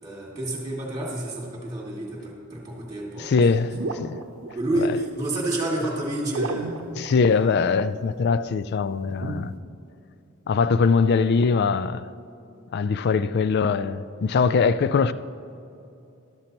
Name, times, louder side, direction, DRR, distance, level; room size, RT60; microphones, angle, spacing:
voice 1, 0.0-3.3 4.5-6.8, right 1 dB, 20° right, 2.2 m, -29 dB
voice 2, 3.2-4.2 4.8-4.9 7.0-9.5 10.5-12.1 12.7-15.1, left 5 dB, 50° left, 0.3 m, -22 dB
sound 1, 3.3-5.0 6.3-7.3 7.9-8.0 9.0-9.6, right 2 dB, 75° right, 0.7 m, -32 dB
13.0 x 12.0 x 3.0 m
head